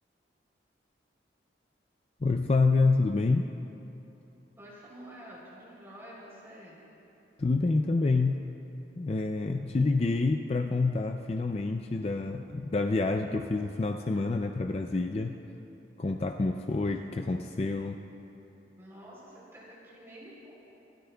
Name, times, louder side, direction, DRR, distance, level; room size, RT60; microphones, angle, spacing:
voice 1, 2.2-3.5 7.4-8.5 9.0-15.4 16.0-18.0, left 3 dB, 35° left, 5 dB, 0.4 m, -27 dB
voice 2, 4.6-6.7 18.8-20.5, equal, 15° right, -6 dB, 3.5 m, -48 dB
26.5 x 13.5 x 2.3 m, 2.9 s
head